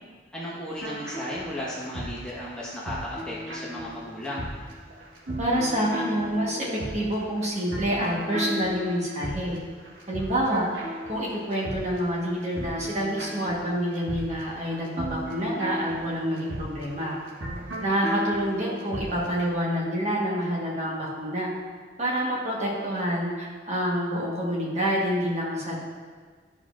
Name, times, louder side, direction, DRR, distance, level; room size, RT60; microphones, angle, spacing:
voice 1, 0.3-4.4, equal, 5° left, -8 dB, 1.3 m, -35 dB
sound 1, 0.8-19.4, equal, 90° right, 1.5 m, -36 dB
voice 2, 5.4-6.7 6.9-9.6 10.1-10.6 11.1-17.2 17.8-21.5 22.0-25.8, equal, 35° right, -5 dB, 1.3 m, -27 dB
12.0 x 5.0 x 2.5 m, 1.5 s
head